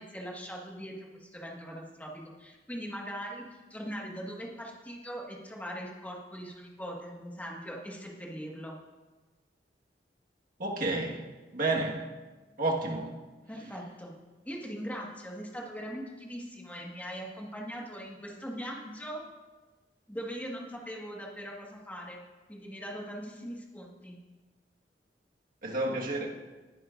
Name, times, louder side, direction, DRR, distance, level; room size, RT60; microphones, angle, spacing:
voice 1, 0.0-8.8 13.5-14.1 14.4-19.2 20.1-22.2 22.5-24.2, equal, 10° left, -2 dB, 1.6 m, -41 dB
voice 2, 10.6-11.2 11.5-12.1 12.6-13.2 25.6-26.3, right 2 dB, 50° right, -1 dB, 1.6 m, -30 dB
19.0 x 10.5 x 2.5 m, 1.2 s
head